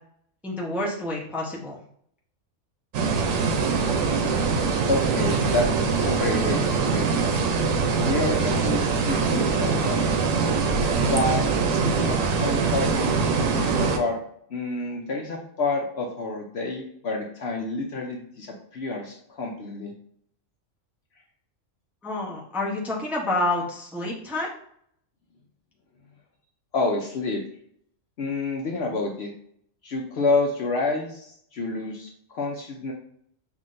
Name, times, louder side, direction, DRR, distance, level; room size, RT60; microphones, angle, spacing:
voice 1, 0.4-1.8 22.0-24.5, left 2 dB, ahead, -3 dB, 0.6 m, -28 dB
sound 1, 2.9-14.0, right 4 dB, 90° right, 1.0 m, -23 dB
voice 2, 4.9-5.7 6.0-7.1 8.0-10.0 11.0-11.4 11.7-14.2 14.5-19.9 26.7-27.4 28.2-29.3 29.8-32.9, left 3 dB, 60° left, 1 dB, 0.8 m, -28 dB
5.8 x 2.7 x 2.5 m, 0.65 s
omnidirectional pair, 1.3 m